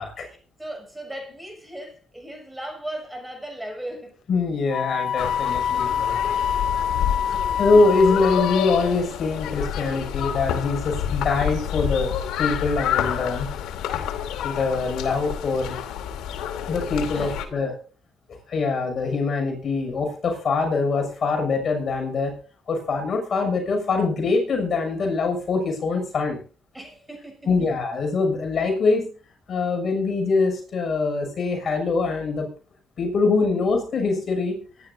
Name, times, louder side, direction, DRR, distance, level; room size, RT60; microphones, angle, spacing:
voice 1, 0.2-4.1 5.9-6.0 6.5-7.7 17.0-17.7 26.7-27.5, right 1 dB, 10° right, 7.2 m, -38 dB
voice 2, 4.3-6.3 7.3-12.1 12.4-13.5 14.4-15.8 16.7-17.7 18.3-22.3 22.7-26.4 27.5-29.1 29.5-32.5 33.0-34.6, left 4 dB, 55° left, 6.5 m, -23 dB
Wind instrument woodwind instrument, 4.7-8.9, left 8 dB, 70° left, 0.7 m, -26 dB
sound 1, 5.2-17.5, left 9 dB, 90° left, 2.6 m, -29 dB
24.5 x 11.5 x 2.7 m
cardioid pair, 90°, 0 cm